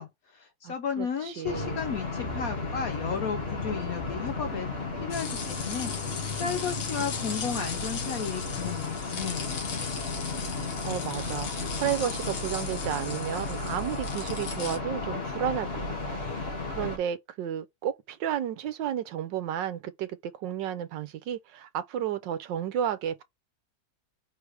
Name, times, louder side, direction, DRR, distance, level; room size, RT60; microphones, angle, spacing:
voice 1, 0.0-9.8, left 6 dB, 65° left, 0.9 m, -34 dB
voice 2, 0.6-1.8 10.5-15.7 16.1-16.5 16.7-23.2, right 10 dB, 75° right, 1.3 m, -32 dB
sound 1, 1.5-17.0, left 3 dB, 35° left, 1.8 m, -34 dB
sound 2, 5.1-14.8, left 6 dB, 85° left, 1.9 m, -38 dB
4.7 x 4.1 x 4.8 m
omnidirectional pair, 2.1 m